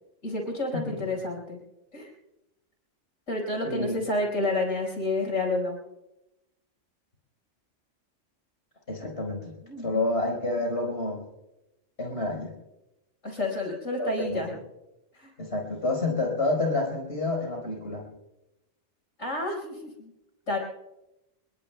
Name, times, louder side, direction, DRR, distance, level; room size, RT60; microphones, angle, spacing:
voice 1, 0.2-1.6 1.9-2.1 3.3-5.8 9.7-10.0 13.2-14.5 15.1-15.3 19.2-20.1 20.5-20.6, left 2 dB, 90° left, 1 dB, 5.4 m, -29 dB
voice 2, 3.6-4.0 8.9-9.5 9.8-11.2 12.0-12.5 14.0-14.5 15.4-18.1, left 2 dB, 60° left, 1 dB, 4.8 m, -29 dB
29.0 x 21.0 x 2.3 m, 0.96 s
omnidirectional pair, 1.3 m